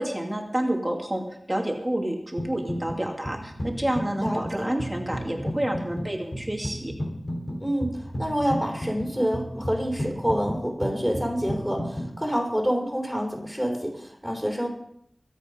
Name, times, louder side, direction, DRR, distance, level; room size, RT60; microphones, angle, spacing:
voice 1, 0.0-6.9, right 1 dB, 20° right, 1 dB, 2.7 m, -29 dB
sound 1, 2.4-3.0 3.3-12.1, equal, 45° left, 3.9 m, -33 dB
voice 2, 4.2-4.7 7.6-14.7, equal, ahead, -1 dB, 5.1 m, -27 dB
24.0 x 8.6 x 5.4 m, 0.71 s
wide cardioid pair, 55°, 0 cm